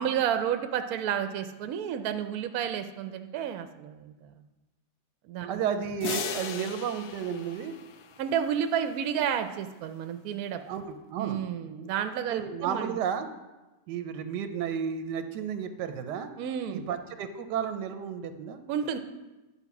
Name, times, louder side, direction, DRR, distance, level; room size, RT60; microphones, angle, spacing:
voice 1, 0.0-4.3 5.3-5.6 8.2-10.6 11.2-12.9 16.4-16.9 18.7-19.0, right 9 dB, 70° right, 8 dB, 0.9 m, -31 dB
voice 2, 5.5-7.7 10.6-11.9 12.3-13.3 13.9-16.3 16.7-18.6, right 7 dB, 90° right, 9 dB, 1.2 m, -33 dB
sound 1, 6.0-8.5, left 8 dB, 75° left, 1.2 m, -37 dB
10.0 x 4.1 x 5.8 m, 1.1 s
omnidirectional pair, 1.8 m